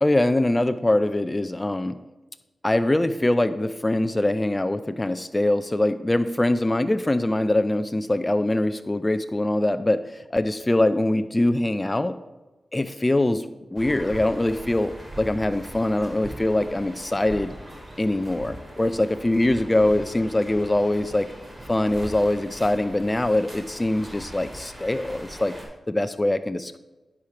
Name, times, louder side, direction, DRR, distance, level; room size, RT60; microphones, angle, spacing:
voice 1, 0.0-2.0 2.6-12.2 12.7-17.6 18.0-21.3 21.7-25.6 25.9-26.8, left 1 dB, 20° left, 10 dB, 0.5 m, -23 dB
sound 1, 13.8-25.6, right 1 dB, 25° right, 3.1 m, -41 dB
10.5 x 4.8 x 5.8 m, 1.1 s
cardioid pair, 45°, 0 cm